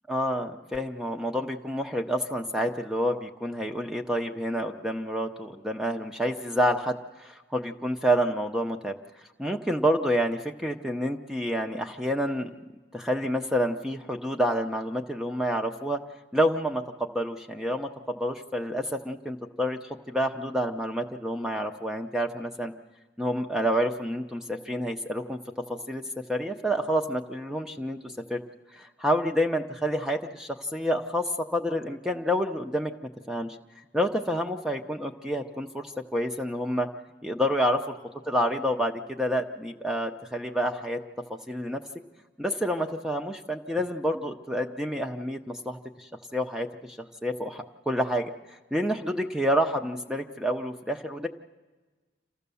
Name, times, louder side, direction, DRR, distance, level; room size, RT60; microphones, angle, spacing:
voice 1, 0.1-8.9 9.4-12.5 12.9-16.0 16.3-22.7 23.2-25.4 25.9-26.0 26.3-28.4 28.7-32.9 33.3-33.6 33.9-36.9 37.2-38.0 38.3-41.0 41.3-41.8 42.4-51.3, equal, 5° right, 4 dB, 0.6 m, -28 dB
27.0 x 14.5 x 7.0 m, 1.3 s
head